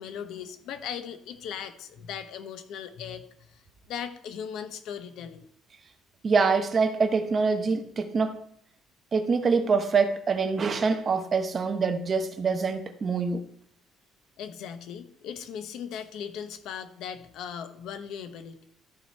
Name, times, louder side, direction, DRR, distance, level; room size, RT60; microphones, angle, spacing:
voice 1, 0.0-3.3 3.5-3.6 3.9-5.5 14.4-18.6, left 8 dB, 65° left, 1.0 m, -38 dB
voice 2, 6.2-8.4 9.1-13.4, right 4 dB, 30° right, 0.9 m, -25 dB
13.5 x 5.0 x 4.5 m
cardioid pair, 150°, 0 cm